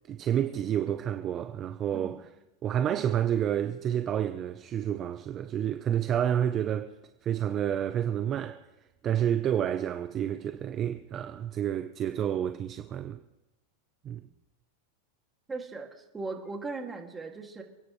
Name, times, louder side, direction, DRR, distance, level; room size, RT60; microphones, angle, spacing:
voice 1, 0.1-2.3 2.6-6.9 7.2-8.6 9.0-13.2 14.0-14.2, right 10 dB, 35° right, 0.8 m, -29 dB
voice 2, 15.5-17.6, right 3 dB, 15° right, 2.5 m, -38 dB
29.5 x 9.9 x 3.3 m
hypercardioid pair, 120°, 0 cm